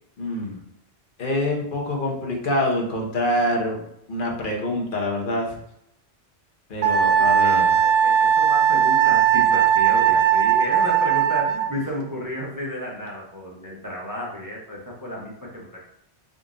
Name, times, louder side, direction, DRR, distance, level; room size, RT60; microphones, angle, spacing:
voice 1, 0.2-0.6 1.2-3.8 4.1-5.6 6.7-7.6, left 1 dB, 50° left, 0 dB, 1.0 m, -25 dB
Wind instrument woodwind instrument, 6.8-11.7, right 9 dB, 80° right, 0.9 m, -18 dB
voice 2, 7.0-15.8, left 1 dB, 20° right, -4 dB, 0.7 m, -33 dB
3.8 x 2.5 x 3.6 m, 0.75 s
omnidirectional pair, 1.1 m